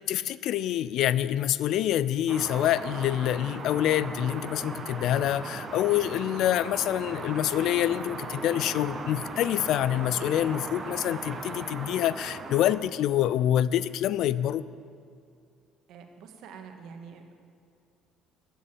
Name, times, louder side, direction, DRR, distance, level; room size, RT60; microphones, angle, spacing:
voice 1, 0.1-14.6, left 12 dB, 70° left, 17 dB, 0.4 m, -26 dB
sound 1, 2.3-12.8, right 3 dB, 35° right, 1.4 m, -38 dB
voice 2, 15.9-17.2, right 6 dB, 70° right, 4 dB, 1.5 m, -46 dB
13.5 x 7.0 x 8.9 m, 2.4 s
supercardioid pair, 85°, 0 cm